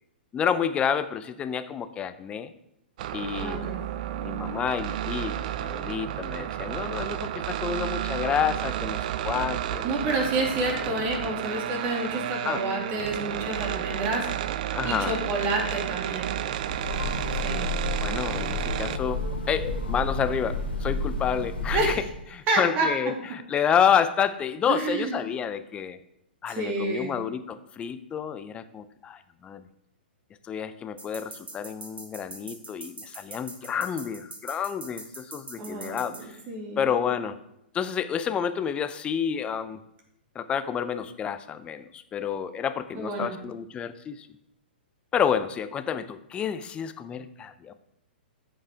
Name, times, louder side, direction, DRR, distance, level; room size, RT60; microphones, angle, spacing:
voice 1, 0.3-2.5 3.1-3.7 4.1-5.3 5.6-9.8 12.4-12.7 14.7-15.2 18.0-19.2 19.5-21.9 22.3-26.0 26.4-29.6 30.5-36.4 36.8-37.4 37.7-39.8 40.3-44.3 45.1-47.7, left 8 dB, 20° left, 11 dB, 0.6 m, -29 dB
sound 1, 3.0-19.0, right 11 dB, 50° right, 0.5 m, -32 dB
voice 2, 3.4-3.8 9.8-14.3 14.8-16.4 17.3-17.7 21.7-22.0 22.5-22.9 24.7-25.2 26.5-27.1 35.6-37.1 42.9-43.4, right 2 dB, 35° right, 0 dB, 2.6 m, -29 dB
Train, 16.5-22.3, left 2 dB, 90° left, 2.2 m, -31 dB
sound 2, 31.0-36.2, right 2 dB, 90° right, 2.1 m, -42 dB
14.0 x 5.5 x 3.6 m, 0.80 s
figure-of-eight pair, 115°, 6 cm